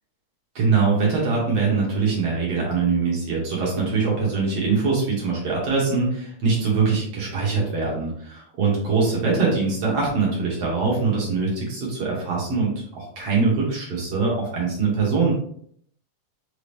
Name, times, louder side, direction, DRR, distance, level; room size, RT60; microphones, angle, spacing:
voice 1, 0.6-15.3, right 4 dB, 60° right, -4 dB, 1.7 m, -23 dB
5.1 x 2.9 x 3.3 m, 0.65 s
omnidirectional pair, 4.0 m